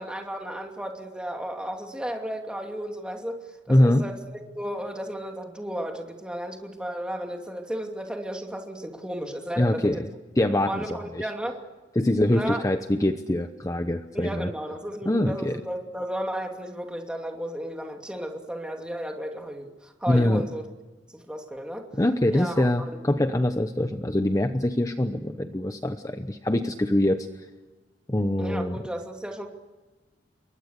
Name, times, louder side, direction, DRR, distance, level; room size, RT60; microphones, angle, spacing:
voice 1, 0.0-10.0 10.7-11.6 12.3-12.6 14.1-20.7 21.1-21.9 22.3-23.0 28.4-29.5, equal, 5° right, 2 dB, 2.7 m, -34 dB
voice 2, 3.7-4.0 9.6-10.0 10.4-11.3 12.0-14.5 15.0-15.6 20.1-20.5 22.0-27.5 28.1-28.8, left 1 dB, 20° left, 8 dB, 0.9 m, -24 dB
28.5 x 23.5 x 6.7 m, 1.2 s
head